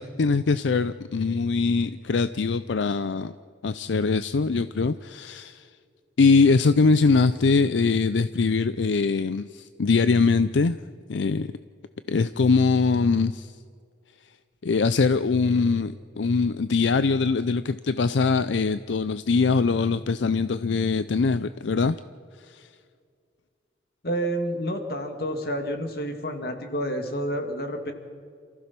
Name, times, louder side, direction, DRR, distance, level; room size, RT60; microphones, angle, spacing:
voice 1, 0.0-3.3 3.6-5.7 6.2-10.8 11.1-11.5 12.1-13.5 14.6-22.0 22.4-22.7, left 4 dB, 80° left, 13 dB, 0.5 m, -22 dB
voice 2, 24.0-27.9, equal, 55° left, 5 dB, 2.2 m, -29 dB
28.5 x 15.0 x 6.0 m, 2.2 s
head